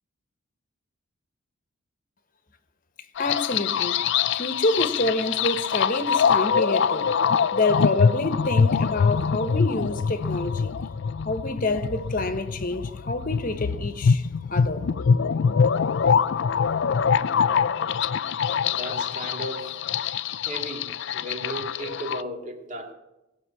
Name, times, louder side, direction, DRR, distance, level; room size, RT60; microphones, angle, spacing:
sound 1, 3.2-22.2, left 6 dB, 55° left, 0.4 m, -24 dB
voice 1, 3.2-4.0 4.3-7.1 7.5-10.8 11.2-14.9, left 2 dB, 40° left, 1.1 m, -27 dB
voice 2, 18.7-19.8 20.4-22.9, right 1 dB, 35° right, 2.1 m, -35 dB
18.5 x 6.4 x 8.5 m
head